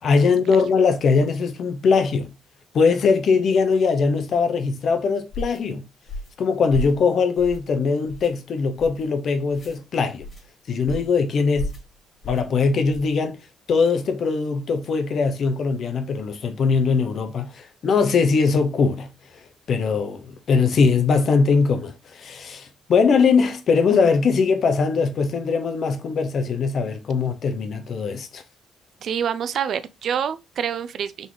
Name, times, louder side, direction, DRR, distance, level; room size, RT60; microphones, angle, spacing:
voice 1, 0.0-2.3 2.7-5.8 6.4-10.2 10.7-11.7 12.2-13.4 13.7-19.1 19.7-28.4, left 5 dB, 60° left, 0.9 m, -21 dB
sound 1, 5.3-5.6 6.1-6.4 6.7-7.0 7.4-7.7 8.1-8.3 8.8-9.0 9.5-9.8 10.2-10.4 10.9-11.2 11.5-11.9 12.2-12.5 12.9-13.1, left 1 dB, 40° left, 2.0 m, -33 dB
voice 2, 29.0-31.3, right 8 dB, 65° right, 0.5 m, -27 dB
4.0 x 3.0 x 3.8 m
cardioid pair, 80°, 0 cm